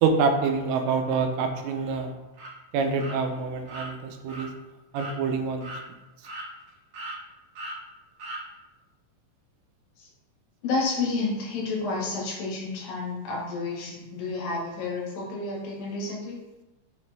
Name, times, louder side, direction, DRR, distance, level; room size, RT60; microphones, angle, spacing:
voice 1, 0.0-2.1 2.7-4.5 4.9-5.7, right 5 dB, 85° right, 5 dB, 2.3 m, -26 dB
sound 1, 2.3-2.5 3.0-3.2 3.7-3.9 4.3-4.5 4.9-5.2 5.6-5.8 6.2-6.7 6.9-7.2 7.5-7.8 8.2-8.4, right 1 dB, 55° right, 2.2 m, -38 dB
voice 2, 10.6-16.4, left 3 dB, 80° left, -3 dB, 3.3 m, -30 dB
6.4 x 5.5 x 3.5 m, 1.0 s
omnidirectional pair, 3.9 m